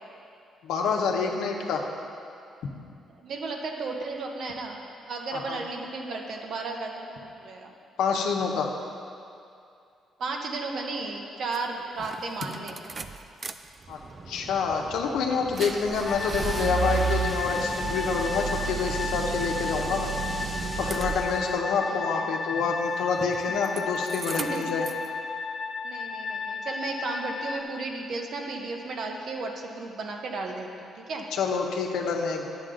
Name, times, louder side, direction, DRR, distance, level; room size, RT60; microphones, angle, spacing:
voice 1, 0.6-1.9 5.3-5.6 8.0-8.7 13.9-14.0 14.3-24.8 31.3-32.5, left 5 dB, 85° left, 1 dB, 0.9 m, -27 dB
voice 2, 3.2-4.8 5.1-7.7 10.2-12.7 21.9-22.3 24.4-24.7 25.8-31.3, right 3 dB, 65° right, 2 dB, 1.0 m, -34 dB
sound 1, 11.5-11.6 12.0-13.5 13.9-21.6 23.1-23.8 24.1-25.1, right 5 dB, 35° right, 0.4 m, -33 dB
sound 2, 16.0-27.6, left 5 dB, 55° left, 0.7 m, -33 dB
10.0 x 7.5 x 3.8 m, 2.5 s
cardioid pair, 90°, 0 cm